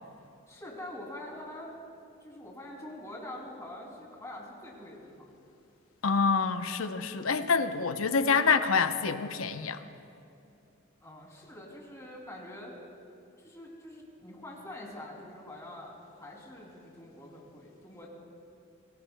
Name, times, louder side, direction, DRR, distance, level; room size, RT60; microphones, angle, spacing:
voice 1, 0.5-1.8 2.2-5.2 11.0-12.8 13.4-18.1, left 1 dB, 15° left, -2 dB, 2.9 m, -45 dB
voice 2, 6.0-9.8, left 5 dB, 75° left, 9 dB, 0.7 m, -26 dB
26.0 x 18.5 x 2.2 m, 2.7 s
head